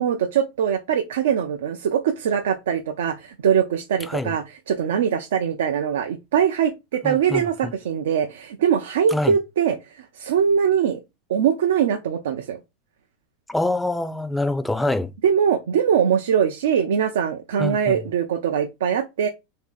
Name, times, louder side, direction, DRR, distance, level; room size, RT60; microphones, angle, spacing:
voice 1, 0.0-11.0 11.3-12.6 15.2-19.3, right 8 dB, 80° right, 0.4 m, -22 dB
voice 2, 7.0-7.7 9.1-9.3 13.5-15.1 17.6-18.0, left 2 dB, 5° left, 0.4 m, -25 dB
2.7 x 2.5 x 3.8 m
hypercardioid pair, 115°, 0 cm